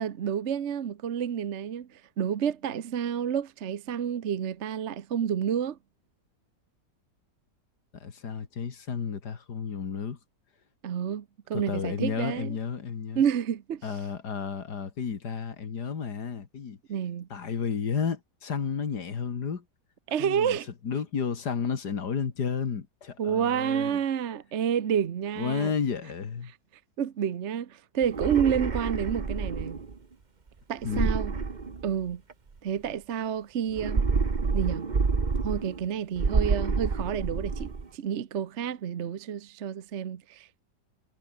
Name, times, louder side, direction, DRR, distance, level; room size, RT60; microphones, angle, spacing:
voice 1, 0.0-5.8 10.8-12.6 13.1-13.9 16.9-17.3 20.1-20.7 23.2-25.7 27.0-29.8 30.7-31.3 31.8-32.2 32.6-34.1 34.5-34.9 35.4-40.6, right 8 dB, 50° right, 1.1 m, -29 dB
voice 2, 7.9-10.2 11.5-13.2 13.8-16.8 17.3-19.6 20.2-20.6 20.8-24.0 25.4-26.5 30.8-31.1, left 6 dB, 70° left, 2.5 m, -32 dB
sound 1, 28.0-29.9 30.8-32.3 33.7-35.9 36.2-37.9, right 4 dB, 30° right, 1.3 m, -28 dB
omnidirectional pair, 1.8 m